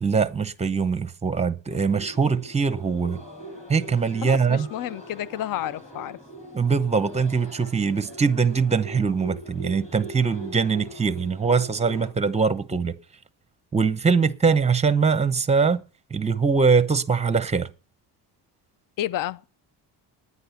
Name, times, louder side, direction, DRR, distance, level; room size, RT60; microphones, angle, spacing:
voice 1, 0.0-3.2 3.7-4.7 6.5-12.9 13.7-15.8 16.1-17.7, right 5 dB, 15° right, 0.8 m, -22 dB
sound 1, 1.7-12.1, right 1 dB, 15° left, 7.2 m, -41 dB
voice 2, 4.2-6.2 19.0-19.4, left 12 dB, 50° left, 0.5 m, -30 dB
9.8 x 9.7 x 7.0 m
cardioid pair, 125°, 42 cm